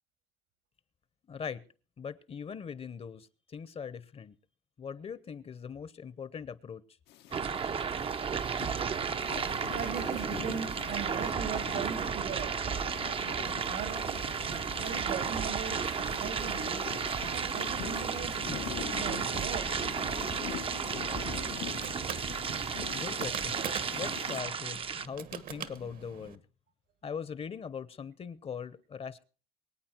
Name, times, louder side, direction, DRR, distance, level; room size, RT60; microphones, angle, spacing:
voice 1, 1.3-1.6 2.0-4.3 4.8-6.8 22.9-23.7 23.9-26.4 27.0-29.2, left 6 dB, 35° left, 17 dB, 0.9 m, -41 dB
sound 1, 7.1-24.4, left 13 dB, 85° left, 1.1 m, -44 dB
sound 2, 7.3-25.1, right 6 dB, 35° right, 0.7 m, -33 dB
voice 2, 9.7-12.7 13.6-14.0 14.8-15.8 16.1-16.8 17.3-18.4 18.9-19.8, right 7 dB, 80° right, 9 dB, 3.1 m, -39 dB
sound 3, 20.8-26.4, right 8 dB, 55° right, 1.2 m, -44 dB
23.5 x 8.7 x 4.4 m, 0.38 s
cardioid pair, 110°, 17 cm